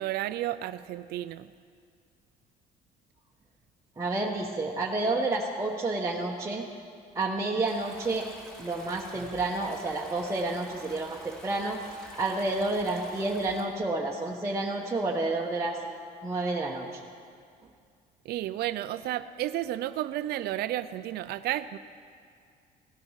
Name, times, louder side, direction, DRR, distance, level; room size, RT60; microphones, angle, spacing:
voice 1, 0.0-1.5 18.3-21.8, right 13 dB, 70° right, 12 dB, 0.5 m, -32 dB
voice 2, 4.0-6.7 7.1-8.3 8.6-11.8 12.1-15.8 16.2-17.0, right 2 dB, 15° right, -3 dB, 1.1 m, -30 dB
Stream, 7.7-13.7, right 1 dB, 5° left, 3.4 m, -48 dB
16.5 x 10.5 x 6.4 m, 2.2 s
cardioid pair, 110°, 17 cm